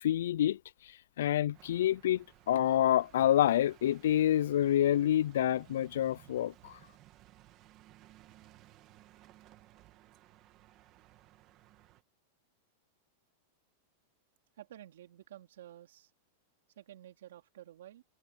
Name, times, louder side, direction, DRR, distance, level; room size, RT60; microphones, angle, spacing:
voice 1, 0.0-0.6 1.2-6.8, left 11 dB, 75° left, 0.3 m, -27 dB
sound 1, 1.5-12.0, right 15 dB, 25° right, 1.7 m, -59 dB
voice 2, 14.6-16.1 16.7-18.0, right 12 dB, 80° right, 3.4 m, -52 dB
supercardioid pair, 180°, 0 cm